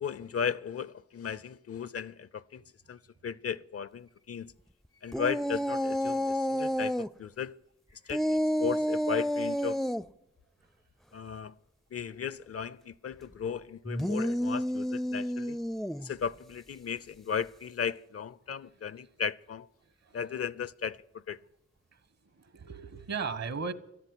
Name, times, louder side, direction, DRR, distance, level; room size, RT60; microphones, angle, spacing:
voice 1, 0.0-2.6 2.9-4.5 5.0-7.6 8.1-9.8 11.1-11.5 11.9-15.6 16.0-19.7 20.1-21.4, left 7 dB, 55° left, 0.5 m, -36 dB
sound 1, 5.1-7.1 8.1-10.0 13.9-16.1, equal, ahead, 0.4 m, -30 dB
voice 2, 22.3-23.7, right 5 dB, 60° right, 1.2 m, -36 dB
13.0 x 8.6 x 9.8 m
cardioid pair, 50°, 29 cm